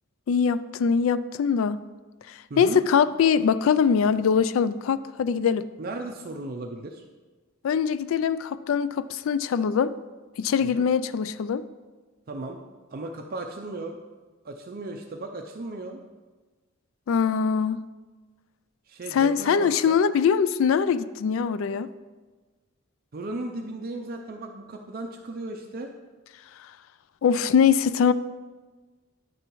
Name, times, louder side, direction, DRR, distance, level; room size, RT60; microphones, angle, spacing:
voice 1, 0.3-1.8 2.3-5.7 7.6-9.9 10.4-11.6 17.1-17.8 19.1-21.9 27.2-28.1, left 6 dB, 70° left, 15 dB, 0.3 m, -22 dB
voice 2, 2.5-2.8 5.8-7.0 10.6-10.8 12.3-12.6 12.9-14.0 14.4-16.0 18.9-19.9 23.1-25.9, right 2 dB, 45° right, 3 dB, 0.5 m, -36 dB
10.0 x 6.6 x 3.1 m, 1.3 s
head